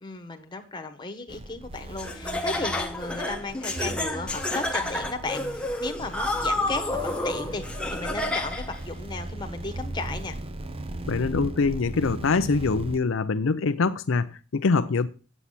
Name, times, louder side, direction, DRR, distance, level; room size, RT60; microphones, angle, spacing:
voice 1, 0.0-7.6 7.9-10.4, left 3 dB, 20° left, 1.3 m, -35 dB
sound 1, 1.3-13.0, right 1 dB, 30° right, 0.7 m, -38 dB
Laughter, 2.0-8.8, left 1 dB, 5° left, 1.0 m, -30 dB
voice 2, 11.1-15.1, left 4 dB, 70° left, 0.5 m, -24 dB
8.6 x 8.2 x 5.7 m
head